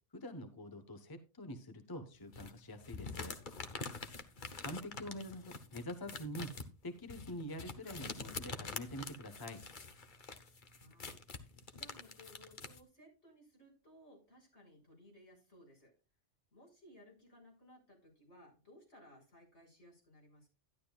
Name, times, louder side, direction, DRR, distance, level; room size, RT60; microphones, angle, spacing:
voice 1, 0.1-3.4 4.6-6.5 6.8-9.6, equal, 20° left, 7 dB, 1.1 m, -45 dB
sound 1, 2.3-12.8, left 4 dB, 45° left, 1.2 m, -46 dB
voice 2, 10.7-15.9 16.5-20.5, equal, 70° left, 0 dB, 5.7 m, -61 dB
12.5 x 11.0 x 2.4 m, 0.31 s
omnidirectional pair, 1.2 m